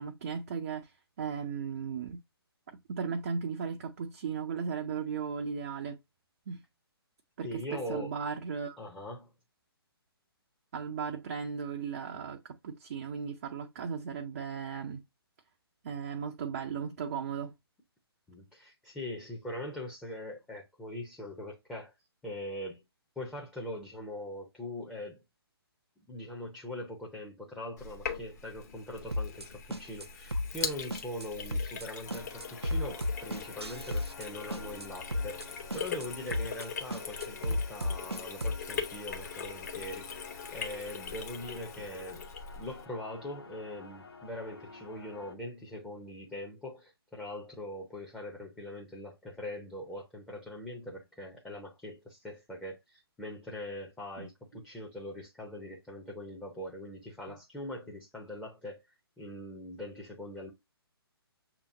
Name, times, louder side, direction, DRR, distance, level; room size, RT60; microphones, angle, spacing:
voice 1, 0.0-2.2 2.7-6.0 6.5-6.6 7.4-8.8 10.7-15.0 15.8-17.5 41.8-41.9 54.2-54.3 57.3-57.4, right 6 dB, 35° right, 0.5 m, -36 dB
voice 2, 7.4-8.1 8.8-9.3 18.3-21.9 22.2-22.8 23.2-25.2 26.0-40.3 40.5-42.3 42.5-60.5, left 1 dB, 5° left, 0.7 m, -42 dB
Sink (filling or washing), 27.8-42.9, left 6 dB, 45° left, 1.0 m, -41 dB
sound 1, 29.1-29.5 29.7-30.1 30.3-30.7 30.9-31.3 31.5-31.9 32.1-34.3 34.5-34.9 35.1-35.5 35.7-36.1 36.3-36.7 36.9-38.6, left 1 dB, 85° right, 0.6 m, -33 dB
sound 2, 32.1-45.4, left 4 dB, 70° left, 1.2 m, -50 dB
6.8 x 2.9 x 2.6 m
figure-of-eight pair, 130°, 13 cm